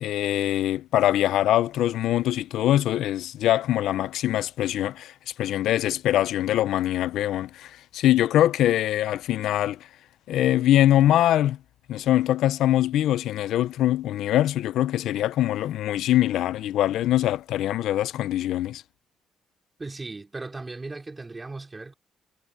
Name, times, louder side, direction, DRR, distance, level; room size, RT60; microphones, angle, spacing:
voice 1, 0.0-5.1 5.4-9.8 10.3-11.6 11.9-18.8, left 13 dB, 80° left, 0.5 m, -23 dB
voice 2, 19.8-21.9, right 3 dB, 20° right, 3.8 m, -37 dB
cardioid pair, 90°, 0 cm